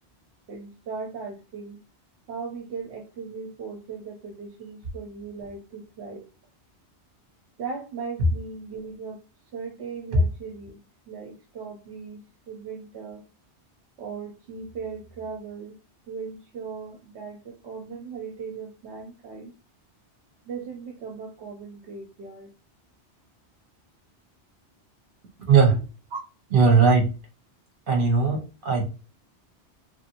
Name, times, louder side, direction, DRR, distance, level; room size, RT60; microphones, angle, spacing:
voice 1, 0.5-1.8 2.3-6.3 7.6-9.2 9.5-10.8 11.1-13.2 14.0-15.8 16.1-19.5 20.5-22.5 26.1-26.2, right 5 dB, 75° right, 2 dB, 0.9 m, -38 dB
voice 2, 25.5-25.8 26.5-27.1 27.9-28.8, right 5 dB, 50° right, 1 dB, 1.2 m, -18 dB
3.1 x 2.5 x 2.8 m, 0.31 s
omnidirectional pair, 1.2 m